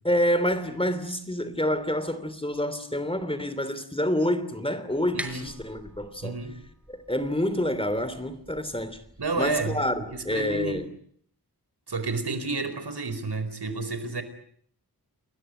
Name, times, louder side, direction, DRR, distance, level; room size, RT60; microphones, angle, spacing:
voice 1, 0.0-6.4 6.9-9.0 9.4-10.9, equal, 15° left, 3.1 m, -28 dB
sound 1, 4.9-10.9, equal, 5° right, 5.3 m, -45 dB
voice 2, 5.1-5.5 6.2-6.6 9.2-9.8 10.1-10.8 11.9-14.2, right 3 dB, 80° right, 4.8 m, -30 dB
29.5 x 21.0 x 9.0 m
wide cardioid pair, 85°, 39 cm